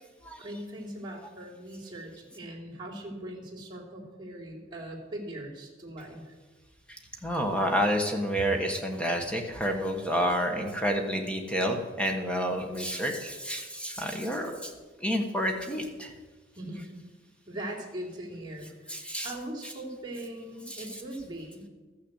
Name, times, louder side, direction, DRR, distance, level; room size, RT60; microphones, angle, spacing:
voice 1, 0.4-6.3 16.5-17.0 17.5-19.0 19.2-21.7, right 1 dB, 25° right, -4 dB, 3.2 m, -40 dB
voice 2, 7.2-14.7 15.0-16.1 18.9-19.3 20.7-20.8, equal, 5° left, 3 dB, 1.3 m, -29 dB
14.0 x 6.6 x 8.1 m, 1.3 s
head